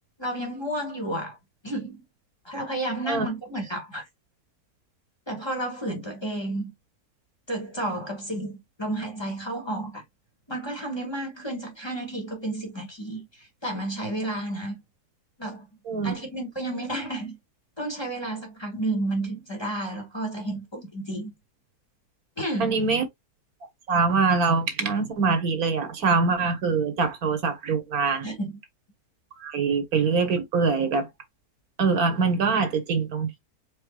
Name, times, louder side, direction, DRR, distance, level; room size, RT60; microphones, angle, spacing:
voice 1, 0.2-1.4 1.6-2.0 2.4-4.1 5.3-6.7 7.5-10.0 10.5-14.8 15.4-15.7 16.0-17.4 17.8-21.3 22.4-22.8 28.2-28.6, right 1 dB, 15° left, 1.7 m, -31 dB
voice 2, 22.6-23.0 23.9-28.3 29.4-31.1 31.8-33.4, right 4 dB, 70° right, 1.5 m, -24 dB
4.7 x 4.3 x 2.2 m
omnidirectional pair, 1.6 m